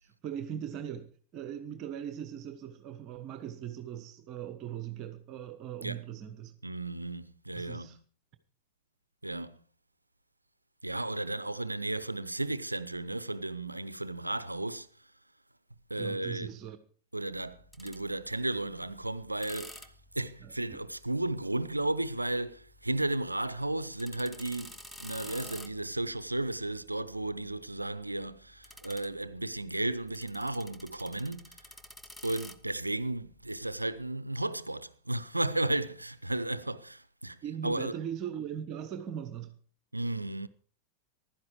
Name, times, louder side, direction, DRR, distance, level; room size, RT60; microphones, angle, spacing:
voice 1, 0.0-6.6 7.6-8.0 16.0-16.8 20.4-20.8 37.4-39.6, right 9 dB, 40° right, 1.2 m, -40 dB
voice 2, 6.6-8.0 9.2-9.6 10.8-14.9 15.9-16.5 17.1-31.7 32.2-37.9 39.9-40.5, right 2 dB, 85° right, 0.8 m, -34 dB
sound 1, 17.5-34.1, left 1 dB, 5° left, 1.0 m, -52 dB
15.5 x 12.0 x 4.8 m
figure-of-eight pair, 90°, 0 cm